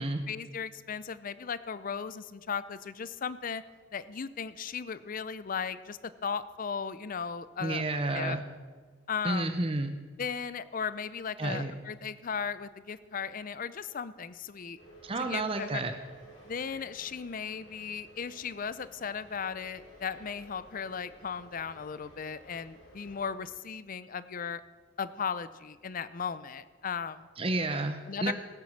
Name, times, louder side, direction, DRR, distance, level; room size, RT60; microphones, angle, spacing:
voice 1, 0.0-3.6 3.9-7.8 8.1-8.4 9.1-9.5 10.2-14.8 15.2-15.8 16.5-24.6 25.0-27.3 28.1-28.3, left 6 dB, 45° left, 15 dB, 0.5 m, -36 dB
voice 2, 7.6-8.4 9.2-9.9 11.4-11.7 15.0-15.9 27.4-28.3, right 2 dB, 30° right, 7 dB, 0.7 m, -31 dB
sound 1, 14.8-23.3, equal, 75° left, 4.5 m, -55 dB
17.0 x 9.3 x 6.5 m, 1.5 s
head